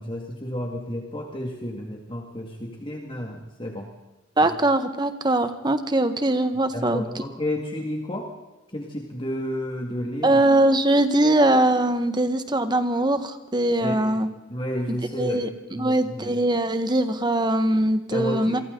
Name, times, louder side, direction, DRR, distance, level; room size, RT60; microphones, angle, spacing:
voice 1, 0.0-3.9 6.7-8.3 8.7-10.3 13.8-14.2 14.5-15.5 15.7-16.3 18.1-18.6, left 1 dB, 25° left, 1 dB, 2.0 m, -31 dB
voice 2, 4.4-7.0 10.2-14.3 14.9-18.6, right 1 dB, 25° right, 9 dB, 1.5 m, -22 dB
28.0 x 23.5 x 4.0 m, 1.1 s
head